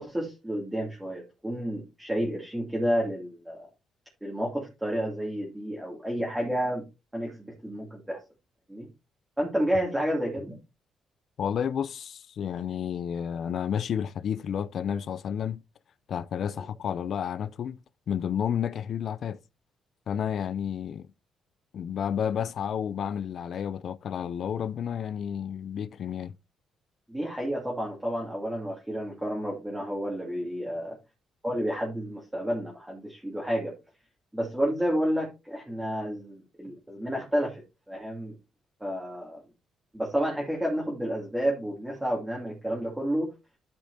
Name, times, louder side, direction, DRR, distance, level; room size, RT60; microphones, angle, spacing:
voice 1, 0.0-3.7 4.2-6.8 7.1-8.2 8.7-8.9 9.4-10.6 27.1-31.0 31.4-33.7 34.3-38.3 38.8-39.4 39.9-43.3, equal, 10° right, 2.5 m, -30 dB
voice 2, 11.4-15.6 16.1-17.8 18.1-19.4 20.1-21.1 21.7-26.3, left 8 dB, 60° left, 0.4 m, -31 dB
12.0 x 6.1 x 2.7 m
cardioid pair, 90°, 0 cm